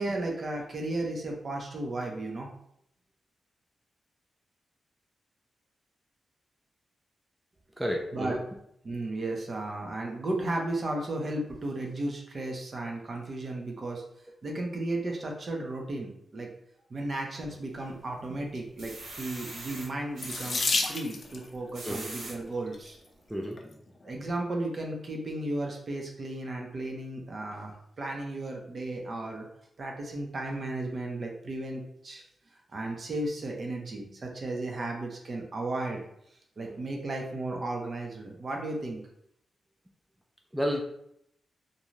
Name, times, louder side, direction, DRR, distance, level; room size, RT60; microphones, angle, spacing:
voice 1, 0.0-2.5 8.1-8.4 8.8-14.0 14.4-16.5 16.9-23.0 24.0-29.5 29.8-32.2 32.7-36.0 36.6-39.0, right 2 dB, 50° right, 1 dB, 0.7 m, -34 dB
voice 2, 7.8-8.4 21.8-22.1 23.3-23.6 40.5-40.8, equal, 10° right, 1 dB, 0.4 m, -30 dB
sound 1, 17.5-18.1 18.5-20.7 21.5-22.4 23.0-23.1 23.4-23.5, right 2 dB, 80° right, 0.8 m, -42 dB
Water tap faucet / Sink (filling or washing), 20.2-21.5 22.5-22.9 23.6-23.7 24.0-24.1, left 3 dB, 55° left, 0.4 m, -30 dB
2.6 x 2.3 x 3.1 m, 0.74 s
cardioid pair, 75°, 0 cm